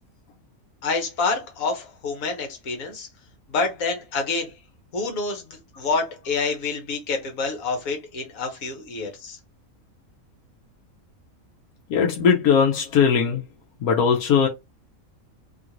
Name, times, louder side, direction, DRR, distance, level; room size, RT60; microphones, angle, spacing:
voice 1, 0.8-3.1 3.5-4.5 4.9-9.4, left 4 dB, 75° left, 1.4 m, -27 dB
voice 2, 11.9-13.4 13.8-14.5, left 6 dB, 90° left, 1.1 m, -19 dB
2.9 x 2.5 x 2.8 m
omnidirectional pair, 1.5 m